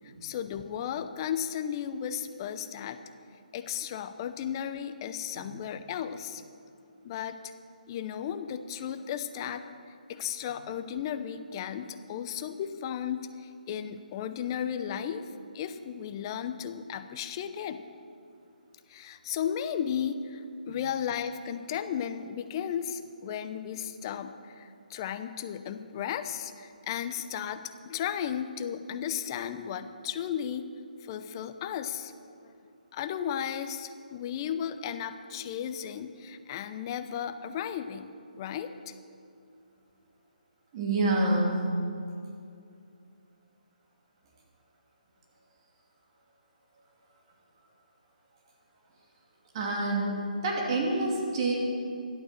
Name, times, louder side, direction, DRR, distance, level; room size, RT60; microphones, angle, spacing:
voice 1, 0.0-3.0 3.5-6.4 7.0-7.4 7.9-9.7 10.1-15.3 15.5-17.8 18.9-30.7 31.0-32.1 32.4-32.5 32.9-38.9, left 9 dB, 30° left, 10 dB, 0.7 m, -35 dB
voice 2, 40.7-41.6 49.5-50.2 50.4-51.5, right 2 dB, 35° right, -2 dB, 2.5 m, -27 dB
11.5 x 11.5 x 6.7 m, 2.5 s
hypercardioid pair, 155°, 5 cm